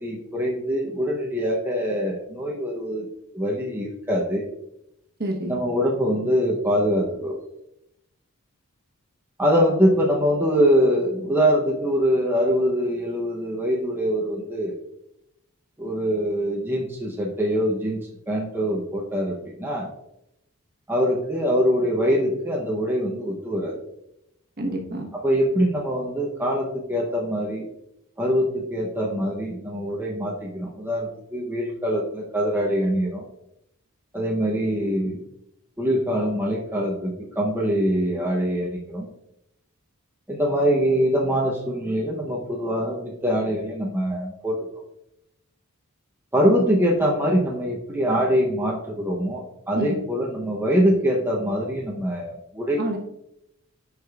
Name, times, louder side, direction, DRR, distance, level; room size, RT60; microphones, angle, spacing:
voice 1, 0.0-3.1 3.3-4.4 5.5-7.4 9.4-14.7 15.8-19.9 20.9-23.8 25.2-27.7 28.2-33.2 34.1-35.2 35.8-39.1 40.3-44.8 46.3-53.0, equal, 10° right, -3 dB, 0.7 m, -23 dB
voice 2, 5.2-5.6 24.6-25.1 49.7-50.0 52.8-53.0, right 1 dB, 45° right, 2 dB, 1.1 m, -28 dB
11.5 x 4.8 x 2.4 m, 0.84 s
head